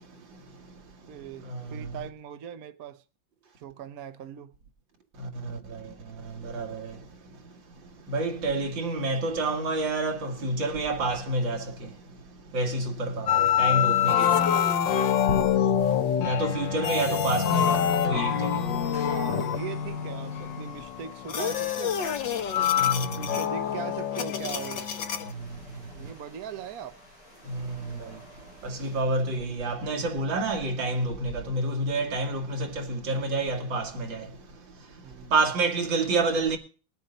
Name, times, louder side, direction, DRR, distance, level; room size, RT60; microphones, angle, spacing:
voice 1, 1.1-3.0 3.6-4.5 18.9-22.7 23.0-24.9 25.9-27.0 35.0-35.3, right 8 dB, 60° right, 1.1 m, -40 dB
voice 2, 6.4-6.9 8.1-11.6 12.5-13.3 13.6-14.4 16.2-18.5 22.8-23.1 27.5-27.7 28.6-34.2 35.3-36.6, right 2 dB, 75° right, 2.6 m, -28 dB
sound 1, 13.3-25.3, left 9 dB, 70° left, 1.7 m, -26 dB
sound 2, 17.4-29.0, equal, 20° left, 5.1 m, -52 dB
20.5 x 7.8 x 3.9 m
omnidirectional pair, 2.1 m